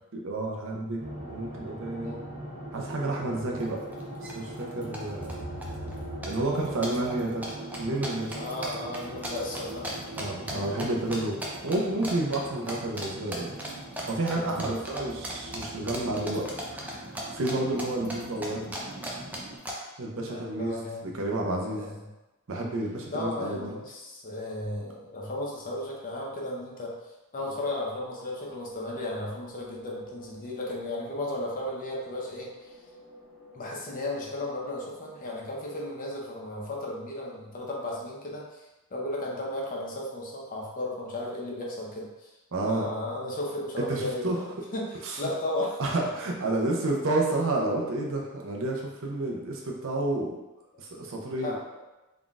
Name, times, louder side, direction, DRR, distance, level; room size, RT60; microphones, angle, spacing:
voice 1, 0.1-1.0 1.3-2.1 2.7-3.8 4.2-5.4 6.3-7.5 7.8-8.4 10.1-13.6 14.1-16.5 16.7-17.0 17.3-18.7 20.0-21.9 22.5-23.8 42.5-42.9 43.9-44.4 45.0-45.2 45.8-50.4 50.8-51.6, right 2 dB, 60° right, 0 dB, 0.7 m, -30 dB
sound 1, 1.0-19.6, right 1 dB, 80° right, 1.1 m, -41 dB
sound 2, 3.6-3.7 3.9-4.3 4.6-5.3 5.6-6.0 6.2-10.8 11.1-11.8 12.0-12.4 12.7-13.1 13.3-17.5 17.8-19.7, right 1 dB, 5° right, 0.5 m, -36 dB
voice 2, 8.3-9.9 14.2-14.8 20.3-21.1 21.7-22.1 23.1-26.9 27.3-32.8 33.5-42.3 42.6-45.8 51.4-51.8, left 1 dB, 40° left, -2 dB, 0.7 m, -35 dB
sound 3, 27.9-35.4, right 2 dB, 65° left, 1.3 m, -51 dB
3.9 x 3.7 x 2.4 m, 1.0 s
head